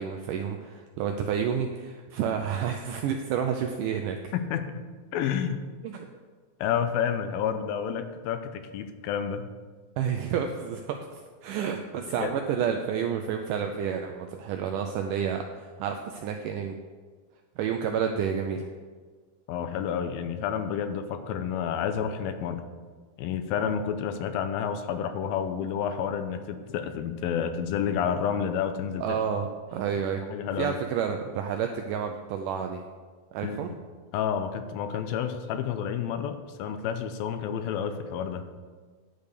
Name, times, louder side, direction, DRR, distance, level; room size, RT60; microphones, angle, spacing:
voice 1, 0.0-4.3 5.8-6.1 10.0-16.7 17.6-18.7 29.0-30.2 30.6-32.8 33.3-33.7, right 7 dB, 85° right, 4 dB, 1.9 m, -30 dB
voice 2, 4.3-4.7 5.1-5.6 6.6-9.4 12.2-12.3 19.5-22.6 23.2-29.2 30.3-30.8 33.4-33.8 34.1-38.5, left 8 dB, 80° left, 9 dB, 2.4 m, -30 dB
10.5 x 5.2 x 6.5 m, 1.5 s
omnidirectional pair, 4.3 m